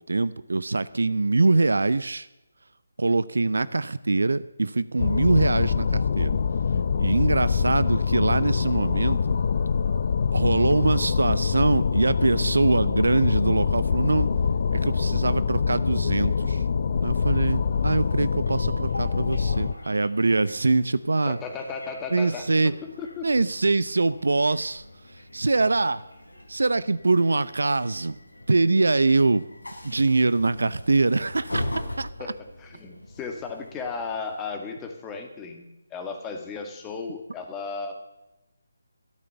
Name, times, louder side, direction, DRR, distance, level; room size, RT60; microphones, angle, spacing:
voice 1, 0.0-2.3 3.0-6.4 7.0-9.2 10.3-14.3 14.7-16.6 17.0-21.4 22.1-22.7 23.2-24.8 25.3-26.0 26.5-28.2 28.5-29.5 29.8-31.6 32.0-32.3, right 3 dB, 70° right, 17 dB, 0.6 m, -23 dB
sound 1, 5.0-19.7, left 5 dB, 45° left, 0.6 m, -24 dB
Train, 17.5-34.7, left 1 dB, 85° left, 3.5 m, -41 dB
voice 2, 21.3-23.5 32.2-35.7 35.9-37.9, left 4 dB, 15° left, 4 dB, 2.0 m, -35 dB
13.0 x 12.0 x 7.0 m, 0.94 s
figure-of-eight pair, 150°, 0 cm